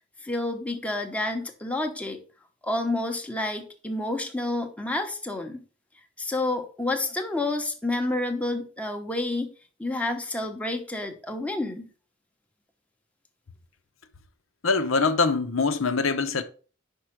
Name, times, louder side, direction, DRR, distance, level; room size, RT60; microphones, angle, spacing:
voice 1, 0.2-2.2 2.6-5.6 6.2-9.5 9.8-11.9, left 2 dB, 5° left, 0.9 m, -29 dB
voice 2, 14.6-16.4, left 4 dB, 85° left, 0.8 m, -23 dB
5.4 x 5.0 x 6.0 m
head